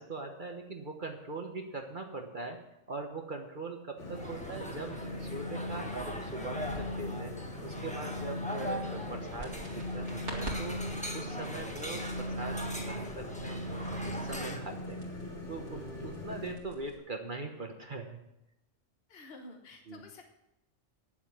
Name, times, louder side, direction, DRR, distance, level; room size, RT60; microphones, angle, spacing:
voice 1, 0.0-7.4 7.6-10.8 11.1-15.0 15.5-18.3 19.9-20.0, right 3 dB, 45° right, 3 dB, 1.3 m, -41 dB
sound 1, 4.0-16.6, left 1 dB, 75° left, 2.7 m, -39 dB
sound 2, 4.1-14.6, equal, 5° left, 1.4 m, -42 dB
sound 3, 9.4-17.0, right 1 dB, 70° right, 2.6 m, -48 dB
voice 2, 19.1-20.3, left 2 dB, 55° left, 3 dB, 1.4 m, -51 dB
9.8 x 7.4 x 8.6 m, 0.86 s
omnidirectional pair, 1.2 m